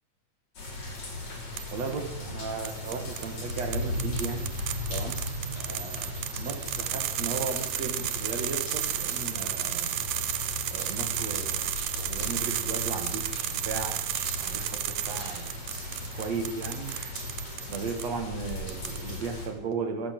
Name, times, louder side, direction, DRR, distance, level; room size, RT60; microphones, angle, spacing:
sound 1, 0.6-19.5, left 2 dB, 55° left, 7.1 m, -37 dB
sound 2, 1.6-2.0 2.7-18.1 18.5-19.3, right 12 dB, 75° right, 2.5 m, -33 dB
voice 1, 1.7-4.5 4.9-5.2 5.6-10.0 10.7-14.0 14.4-15.6 16.1-16.9 17.7-20.1, right 5 dB, 55° right, 6 dB, 3.1 m, -36 dB
26.0 x 13.0 x 7.8 m, 1.1 s
omnidirectional pair, 3.8 m